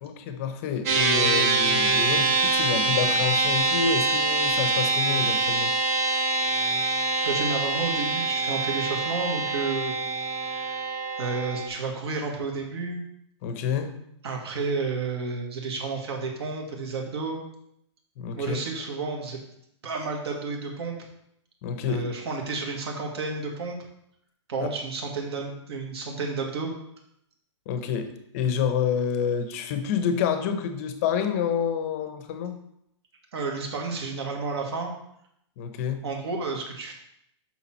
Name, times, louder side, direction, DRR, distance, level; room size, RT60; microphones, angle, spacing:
voice 1, 0.0-5.7 13.4-13.9 18.2-18.6 21.6-22.0 24.6-24.7 27.7-32.6 35.6-36.0, left 7 dB, 30° left, 8 dB, 0.8 m, -28 dB
sound 1, 0.9-11.7, right 3 dB, 30° right, 1.2 m, -25 dB
voice 2, 7.2-9.9 11.2-13.0 14.2-17.4 18.3-19.4 19.8-21.0 21.9-23.8 24.5-26.7 33.3-34.9 36.0-36.9, right 4 dB, 55° right, 1 dB, 1.7 m, -31 dB
7.0 x 5.8 x 4.4 m, 0.76 s
hypercardioid pair, 165°, 16 cm